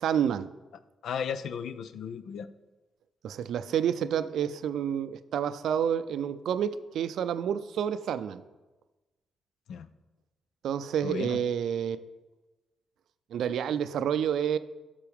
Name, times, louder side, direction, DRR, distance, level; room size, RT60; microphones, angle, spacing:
voice 1, 0.0-0.5 3.2-8.4 10.6-12.0 13.3-14.6, right 8 dB, 75° right, 13 dB, 0.4 m, -29 dB
voice 2, 1.0-2.5 9.7-9.9 11.0-11.4, left 7 dB, 70° left, 13 dB, 0.4 m, -35 dB
12.0 x 6.7 x 3.6 m, 1.2 s
supercardioid pair, 50°, 0 cm